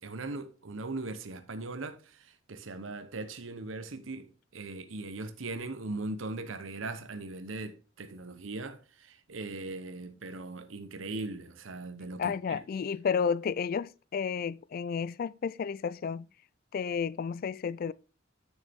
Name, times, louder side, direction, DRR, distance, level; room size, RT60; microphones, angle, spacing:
voice 1, 0.0-12.6, right 2 dB, 85° right, 0.9 m, -39 dB
voice 2, 12.2-16.3 16.7-17.9, left 6 dB, 50° left, 0.3 m, -32 dB
9.6 x 6.5 x 3.6 m
head